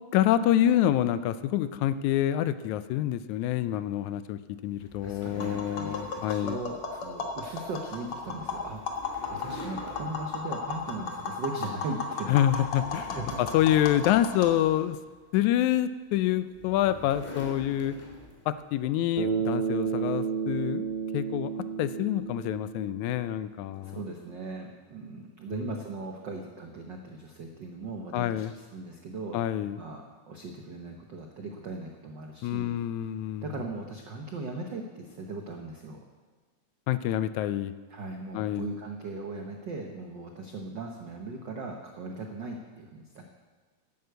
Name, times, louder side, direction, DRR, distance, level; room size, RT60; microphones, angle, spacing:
voice 1, 0.1-6.6 12.3-13.2 13.5-15.0 15.3-18.0 18.5-20.9 21.1-21.5 21.8-24.0 25.5-25.7 28.1-28.5 29.3-29.8 32.4-33.5 36.9-37.7 38.3-38.7, left 12 dB, 80° left, 13 dB, 1.9 m, -27 dB
sound 1, 4.8-11.3 11.7-12.0 12.4-15.4 16.2-18.6, equal, 5° left, 2.0 m, -46 dB
voice 2, 5.0-9.0 9.3-12.3 13.0-13.4 23.8-29.4 29.8-32.8 33.4-36.0 37.9-43.2, right 3 dB, 75° right, 2 dB, 1.0 m, -39 dB
Tap, 5.3-14.5, left 4 dB, 55° left, 2.0 m, -35 dB
Bass guitar, 19.2-23.5, right 7 dB, 50° right, 2.0 m, -31 dB
11.5 x 9.3 x 7.8 m, 1.4 s
omnidirectional pair, 3.5 m